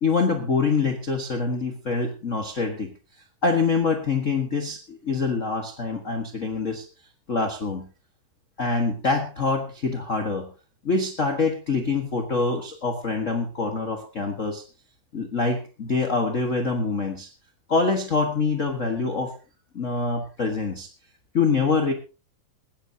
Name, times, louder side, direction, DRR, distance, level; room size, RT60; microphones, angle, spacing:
voice 1, 0.0-2.9 3.4-6.8 7.3-7.9 8.6-10.5 10.8-14.6 15.1-17.3 17.7-19.3 19.7-20.9 21.3-21.9, left 4 dB, 55° left, 5 dB, 0.8 m, -25 dB
20.0 x 16.0 x 2.8 m, 0.33 s
omnidirectional pair, 3.8 m